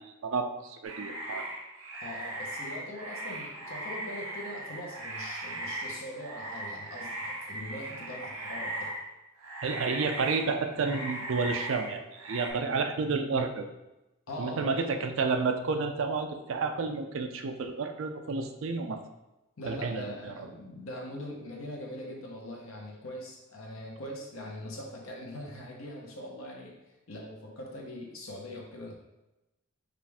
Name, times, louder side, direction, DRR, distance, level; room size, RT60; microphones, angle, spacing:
voice 1, 0.0-1.5 9.6-13.7 14.4-19.0 19.7-20.3, right 4 dB, 65° right, 6 dB, 0.4 m, -31 dB
sound 1, 0.8-9.1 9.4-12.5, right 1 dB, 85° right, 1.1 m, -38 dB
voice 2, 2.0-8.9 14.3-15.1 19.6-26.7 27.1-28.9, left 1 dB, 75° left, -1 dB, 0.9 m, -42 dB
5.0 x 2.5 x 3.4 m, 0.98 s
head